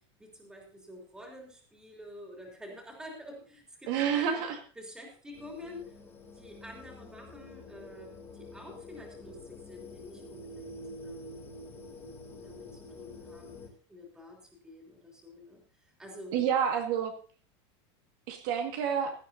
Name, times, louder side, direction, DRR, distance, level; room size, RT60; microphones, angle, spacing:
voice 1, 0.2-4.5 4.7-6.0 6.3-10.8 11.0-11.4 11.7-11.9 12.4-13.6 13.9-16.3, left 1 dB, 5° right, 0 dB, 3.2 m, -48 dB
voice 2, 3.9-4.6 16.3-17.1 18.3-19.1, right 8 dB, 50° right, 4 dB, 1.9 m, -28 dB
sound 1, 5.3-13.7, left 2 dB, 15° left, 2.8 m, -47 dB
17.5 x 12.5 x 2.8 m, 0.39 s
supercardioid pair, 175°, 14 cm